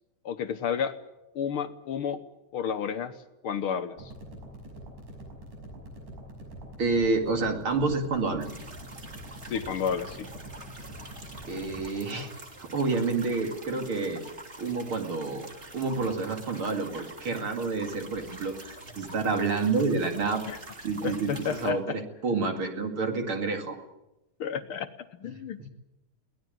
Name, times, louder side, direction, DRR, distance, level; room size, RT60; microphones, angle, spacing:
voice 1, 0.2-1.0 1.3-2.2 2.5-3.2 3.4-4.1 9.5-10.3 20.5-20.6 21.0-22.0 24.4-25.7, left 7 dB, 65° left, 9 dB, 1.4 m, -31 dB
sound 1, 4.0-11.9, right 1 dB, 75° right, 7.4 m, -44 dB
voice 2, 6.8-8.5 11.5-12.3 12.6-14.2 14.6-15.5 15.7-20.4 20.8-23.8 25.6-25.7, right 4 dB, 45° right, 4 dB, 2.9 m, -29 dB
sound 2, 8.4-21.7, right 2 dB, 20° right, 2.9 m, -46 dB
22.5 x 18.5 x 9.2 m, 0.93 s
omnidirectional pair, 3.5 m